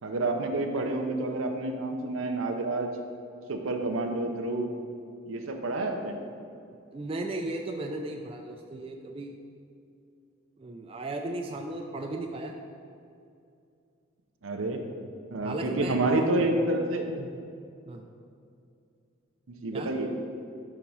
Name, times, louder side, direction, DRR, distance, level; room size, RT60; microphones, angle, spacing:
voice 1, 0.0-2.9 3.5-4.7 5.3-6.1 14.4-14.9 15.3-17.1 19.5-20.1, right 2 dB, 85° right, 4 dB, 0.6 m, -29 dB
voice 2, 6.9-9.3 10.6-12.5 15.4-16.3 17.2-17.4 17.9-18.1 19.7-19.9, right 2 dB, 30° right, 3 dB, 0.3 m, -35 dB
4.9 x 4.5 x 5.4 m, 2.4 s
head